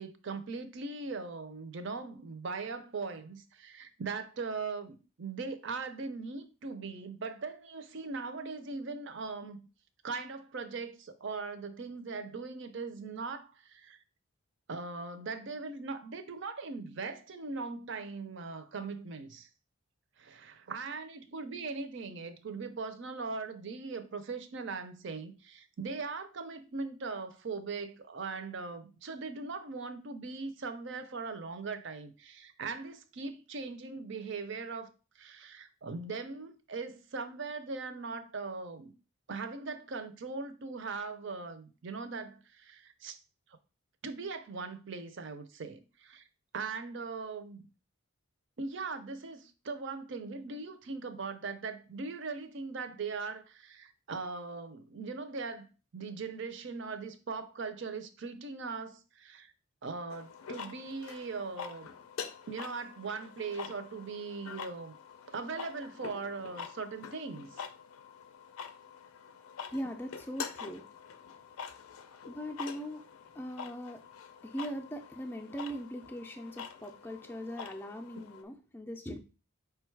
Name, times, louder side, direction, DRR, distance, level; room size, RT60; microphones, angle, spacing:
voice 1, 0.0-9.6 10.0-14.0 14.7-19.5 20.2-38.9 39.3-43.2 44.0-46.2 46.5-47.7 48.6-55.7 55.9-59.5 59.8-61.9 62.5-65.0 65.3-67.6, right 4 dB, 55° right, 0.5 m, -40 dB
sound 1, 60.1-78.4, left 6 dB, 75° left, 0.5 m, -46 dB
voice 2, 69.7-70.9 72.2-73.0 73.3-74.0 74.4-79.2, equal, 10° left, 0.4 m, -40 dB
4.9 x 2.3 x 4.5 m
head